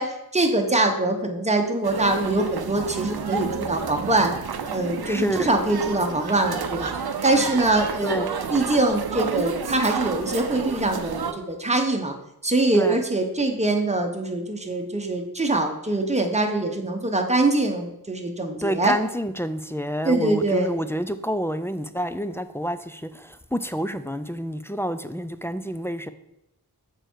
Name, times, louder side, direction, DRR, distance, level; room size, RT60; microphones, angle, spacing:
voice 1, 0.0-4.3 4.7-6.9 7.2-8.2 8.5-12.1 12.4-18.9 20.0-20.8, right 2 dB, 15° right, 0.9 m, -23 dB
sound 1, 1.8-11.3, right 6 dB, 75° right, 0.6 m, -30 dB
voice 2, 5.0-5.4 8.0-8.3 12.8-13.0 18.6-26.1, equal, 5° left, 0.3 m, -28 dB
6.8 x 4.5 x 4.5 m
wide cardioid pair, 60°, 38 cm